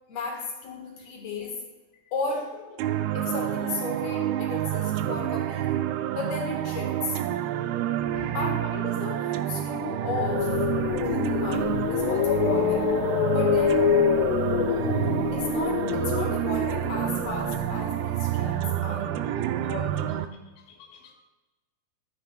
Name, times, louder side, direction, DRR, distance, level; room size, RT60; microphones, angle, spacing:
voice 1, 0.1-1.6 2.1-2.6 3.1-5.8 6.2-7.2 8.3-10.6 11.0-13.0 13.3-13.9 15.3-19.2 19.6-20.0, left 4 dB, 70° left, 1 dB, 3.3 m, -34 dB
sound 1, 2.8-20.3, right 12 dB, 80° right, 2.4 m, -28 dB
voice 2, 8.0-8.5 14.7-14.9 19.4-19.8 20.6-21.1, left 1 dB, 50° left, 0 dB, 2.9 m, -47 dB
sound 2, 10.0-18.1, left 10 dB, 90° left, 2.6 m, -26 dB
15.0 x 13.5 x 2.3 m, 1.1 s
omnidirectional pair, 4.6 m